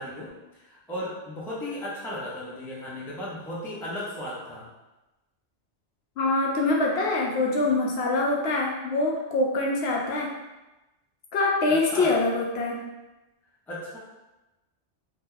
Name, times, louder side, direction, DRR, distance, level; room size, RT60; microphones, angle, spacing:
voice 1, 0.0-4.7 11.7-12.1 13.7-14.0, left 1 dB, ahead, -7 dB, 0.5 m, -36 dB
voice 2, 6.2-10.3 11.3-12.8, left 2 dB, 70° left, -2 dB, 0.8 m, -24 dB
2.8 x 2.1 x 3.7 m, 1.0 s
omnidirectional pair, 1.2 m